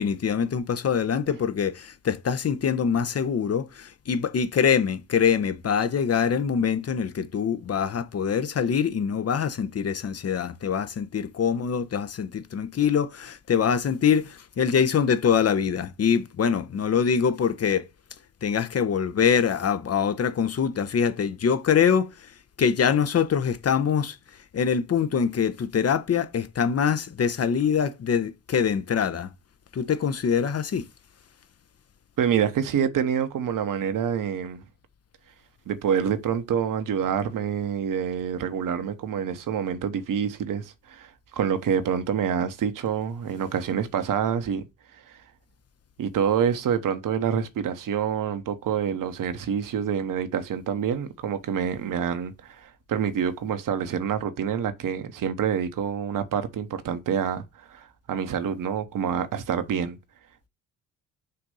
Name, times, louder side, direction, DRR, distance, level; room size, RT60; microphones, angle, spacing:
voice 1, 0.0-17.8 18.4-22.1 22.6-24.1 24.5-29.3 29.7-30.8, left 7 dB, 40° left, 0.9 m, -24 dB
voice 2, 32.2-34.6 35.7-44.7 45.1-45.2 46.0-60.0, right 8 dB, 55° right, 1.1 m, -27 dB
6.6 x 2.6 x 5.4 m
hypercardioid pair, 50°, 39 cm